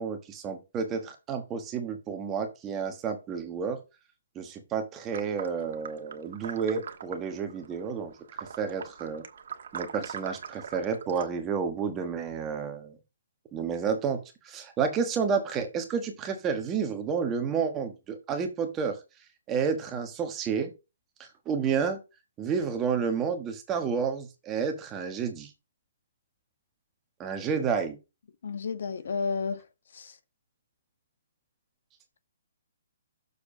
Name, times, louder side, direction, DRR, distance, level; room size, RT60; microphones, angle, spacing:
voice 1, 0.0-3.8 4.3-9.2 9.7-13.0 13.5-19.0 19.5-20.7 21.5-22.0 22.4-25.5 27.2-28.0, right 6 dB, 15° right, 1.3 m, -30 dB
sound 1, 5.0-11.3, right 7 dB, 55° right, 1.4 m, -41 dB
voice 2, 28.4-29.6 29.9-30.2, left 5 dB, 60° left, 1.3 m, -31 dB
6.8 x 4.8 x 5.0 m
hypercardioid pair, 170°, 0 cm